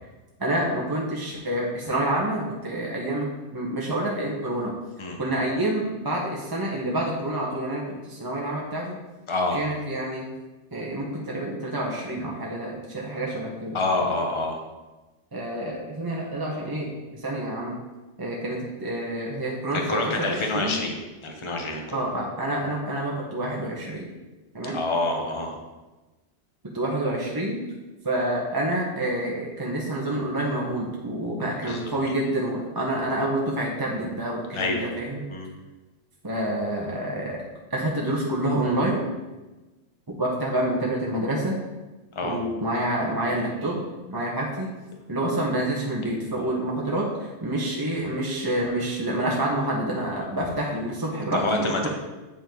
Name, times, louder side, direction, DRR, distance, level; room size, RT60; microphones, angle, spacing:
voice 1, 0.4-4.8 5.2-9.0 9.5-10.3 10.7-13.8 15.3-17.8 18.2-20.8 21.9-24.1 24.5-24.8 26.7-27.6 28.0-35.2 36.2-37.4 37.7-39.0 40.2-41.6 42.2-43.8 44.1-44.7 45.1-51.9, right 1 dB, 20° right, -3 dB, 0.9 m, -28 dB
voice 2, 9.3-9.6 13.7-14.6 19.7-22.0 24.7-25.6 31.6-31.9 34.5-34.9 35.3-35.5 42.1-42.4 51.3-51.9, left 2 dB, 25° left, 2 dB, 0.9 m, -27 dB
8.5 x 5.3 x 3.9 m, 1.2 s
omnidirectional pair, 1.3 m